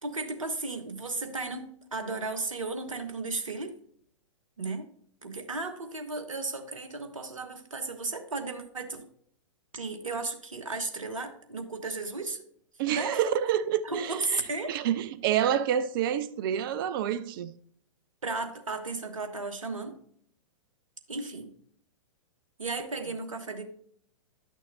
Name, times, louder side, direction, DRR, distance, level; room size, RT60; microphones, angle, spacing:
voice 1, 0.0-3.8 4.6-4.9 5.2-9.1 9.7-12.4 12.9-13.2 13.8-14.7 18.2-20.0 21.1-21.5 22.6-23.6, right 3 dB, 75° right, 1.3 m, -34 dB
voice 2, 12.8-14.1 14.7-17.5, right 10 dB, 40° right, 0.6 m, -28 dB
11.0 x 6.3 x 2.6 m
figure-of-eight pair, 110°, 17 cm